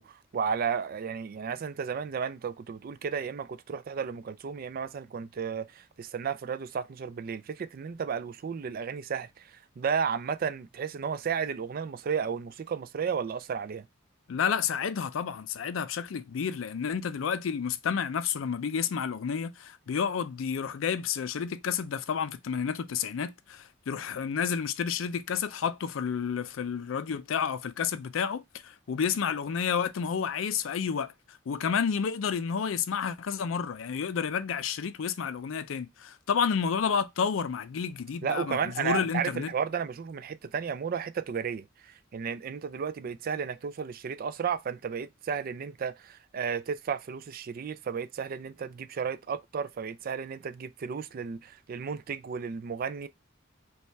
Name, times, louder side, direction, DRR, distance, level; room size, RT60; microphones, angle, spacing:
voice 1, 0.0-13.9 38.2-53.1, right 6 dB, 50° right, 0.3 m, -33 dB
voice 2, 14.3-39.5, left 7 dB, 85° left, 0.4 m, -30 dB
5.3 x 2.4 x 3.2 m
head